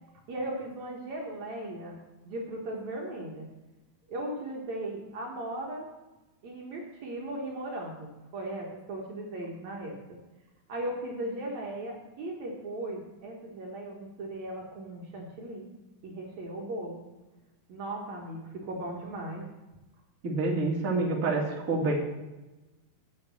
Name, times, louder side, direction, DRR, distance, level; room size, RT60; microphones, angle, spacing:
voice 1, 0.3-3.5 4.1-5.9 6.4-10.0 10.7-15.7 16.0-17.0 17.7-19.5, right 1 dB, 60° right, -2 dB, 2.2 m, -37 dB
voice 2, 20.2-21.9, right 3 dB, 35° right, -3 dB, 1.5 m, -27 dB
7.9 x 7.5 x 7.4 m, 1.1 s
omnidirectional pair, 4.5 m